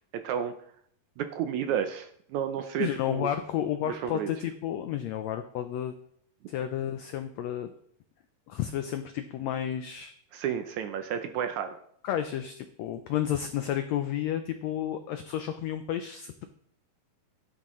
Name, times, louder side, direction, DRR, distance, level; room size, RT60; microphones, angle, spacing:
voice 1, 0.1-0.5 1.2-3.3 3.9-4.3 10.3-11.8, right 8 dB, 75° right, 8 dB, 1.8 m, -31 dB
voice 2, 2.8-5.9 6.5-7.7 8.5-10.1 12.0-16.5, left 10 dB, 90° left, 8 dB, 1.5 m, -31 dB
12.5 x 10.0 x 3.1 m, 0.65 s
omnidirectional pair, 3.9 m